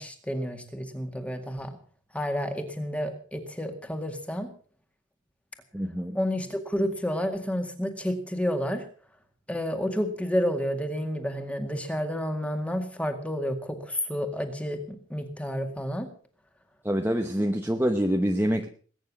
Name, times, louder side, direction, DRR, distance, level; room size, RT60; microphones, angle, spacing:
voice 1, 0.0-1.8 2.1-4.5 6.1-8.8 9.5-16.1, equal, 5° left, 6 dB, 2.0 m, -30 dB
voice 2, 5.7-6.2 16.8-18.7, equal, 10° right, 3 dB, 1.0 m, -26 dB
20.5 x 9.4 x 6.2 m, 0.43 s
head